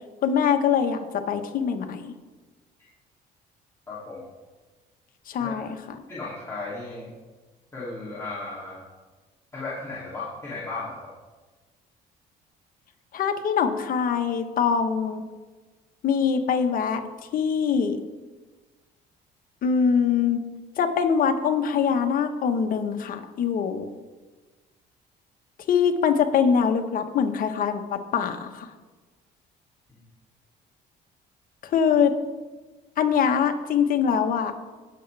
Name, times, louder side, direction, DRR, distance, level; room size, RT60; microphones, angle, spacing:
voice 1, 0.2-2.1 5.3-5.8 13.1-15.2 16.0-17.0 17.3-18.0 19.6-20.4 20.8-23.9 25.7-28.7 31.6-32.1 33.0-34.5, left 7 dB, 55° left, 6 dB, 1.2 m, -23 dB
voice 2, 3.9-4.3 5.4-5.5 6.1-7.1 7.7-8.8 9.5-11.1, left 3 dB, 15° left, -9 dB, 2.8 m, -35 dB
18.5 x 6.9 x 3.4 m, 1.3 s
cardioid pair, 110°, 17 cm